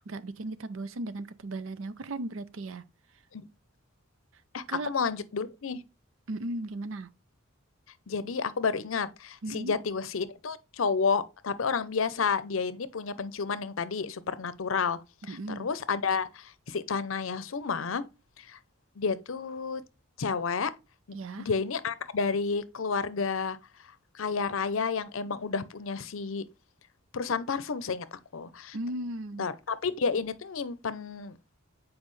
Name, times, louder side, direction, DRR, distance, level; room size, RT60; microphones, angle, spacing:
voice 1, 0.1-2.8 4.7-4.9 6.3-7.1 9.4-9.7 15.3-15.7 21.1-21.5 28.7-29.5, right 2 dB, 65° right, 0.6 m, -36 dB
voice 2, 4.5-5.8 8.1-15.0 15.3-18.1 18.4-18.6 19.0-19.8 20.2-20.7 21.1-23.6 24.1-26.4 27.1-28.8 29.4-31.4, left 5 dB, 70° left, 0.6 m, -31 dB
7.5 x 4.7 x 3.1 m
head